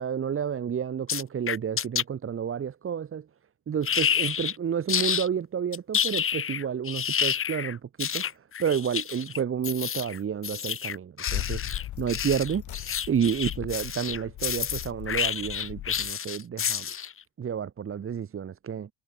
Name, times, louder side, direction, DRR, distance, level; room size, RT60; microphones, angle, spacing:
voice 1, 0.0-3.3 3.7-11.6 12.0-16.9 17.4-18.9, right 8 dB, 40° right, 4.4 m, -30 dB
sound 1, 1.1-2.0 3.8-4.6 4.9-5.3 5.7-17.2, left 8 dB, 40° left, 2.5 m, -29 dB
sound 2, 11.3-16.1, left 14 dB, 65° left, 3.4 m, -38 dB
supercardioid pair, 95°, 32 cm